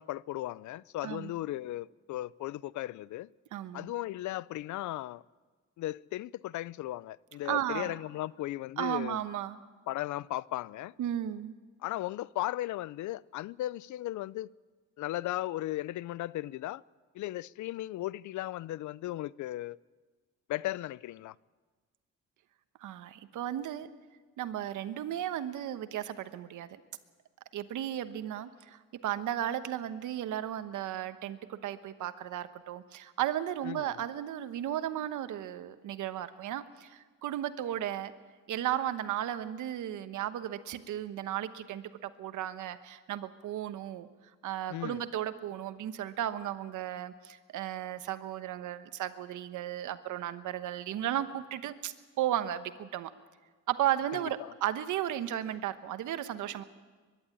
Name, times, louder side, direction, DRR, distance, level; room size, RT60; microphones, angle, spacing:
voice 1, 0.0-3.3 3.7-5.2 5.8-9.2 9.9-10.9 11.8-14.5 15.0-16.8 17.1-19.8 20.5-21.3 33.6-34.0 44.7-45.0 54.1-54.5, left 15 dB, 70° left, 0.5 m, -36 dB
voice 2, 3.5-3.9 7.4-7.9 8.8-9.6 11.0-11.5 22.8-23.9 24.4-26.8 27.5-38.1 38.5-44.1 44.4-53.1 53.7-56.6, right 11 dB, 80° right, 1.2 m, -35 dB
23.0 x 11.5 x 9.9 m
cardioid pair, 90°, 30 cm